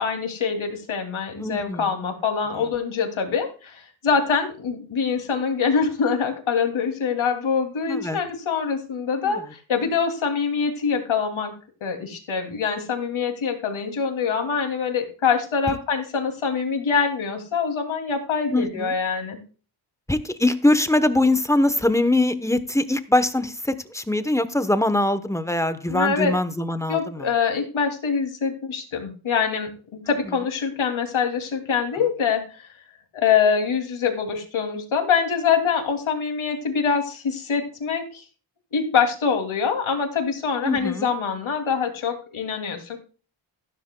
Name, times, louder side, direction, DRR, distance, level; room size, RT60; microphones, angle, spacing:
voice 1, 0.0-11.5 11.8-19.4 25.9-26.4 26.9-32.7 33.1-38.2 38.7-43.0, left 6 dB, 80° left, 4 dB, 2.7 m, -24 dB
voice 2, 1.4-1.9 2.5-2.6 7.9-8.2 9.2-9.4 18.5-18.9 20.1-27.3 30.1-30.2 40.6-41.1, left 1 dB, 5° left, 11 dB, 0.8 m, -22 dB
14.5 x 12.5 x 2.2 m, 0.36 s
wide cardioid pair, 140°, 47 cm